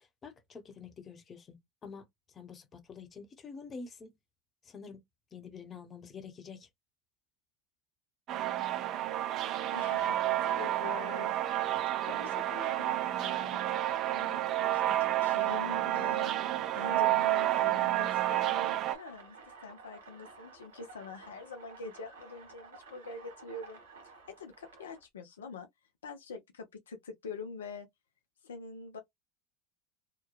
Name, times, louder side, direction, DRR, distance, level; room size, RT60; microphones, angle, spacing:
voice 1, 0.0-2.1 2.3-4.2 4.6-5.0 5.3-6.7, left 5 dB, 30° left, 1.0 m, -47 dB
sound 1, 8.3-18.9, right 14 dB, 50° right, 0.4 m, -30 dB
voice 2, 9.7-10.2 10.5-11.6 12.0-13.6 14.1-23.8 24.3-25.7 26.0-27.9 28.4-29.0, left 4 dB, 85° left, 0.5 m, -45 dB
sound 2, 9.8-25.0, right 3 dB, 75° right, 1.1 m, -53 dB
2.9 x 2.2 x 2.4 m
hypercardioid pair, 75°, 0 cm